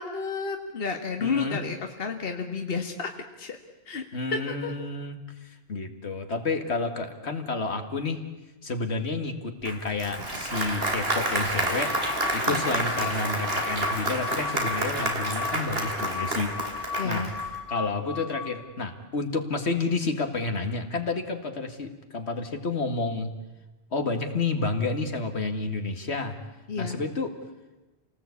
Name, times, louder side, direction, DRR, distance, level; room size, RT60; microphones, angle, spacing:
voice 1, 0.0-3.1 3.4-3.6 3.9-4.0 4.3-4.7 12.5-12.6 17.0-17.3 26.7-27.0, left 5 dB, 60° left, 4 dB, 1.8 m, -31 dB
voice 2, 1.2-1.6 4.1-8.2 8.6-12.0 12.3-16.5 17.0-17.3 17.7-23.3 23.9-26.4 26.8-27.3, left 3 dB, 75° left, 6 dB, 2.3 m, -30 dB
Applause, 9.6-17.5, right 1 dB, 60° right, 3.6 m, -29 dB
sound 1, 11.8-18.8, left 6 dB, 35° left, 1.8 m, -36 dB
28.5 x 18.5 x 8.5 m, 1.1 s
omnidirectional pair, 1.1 m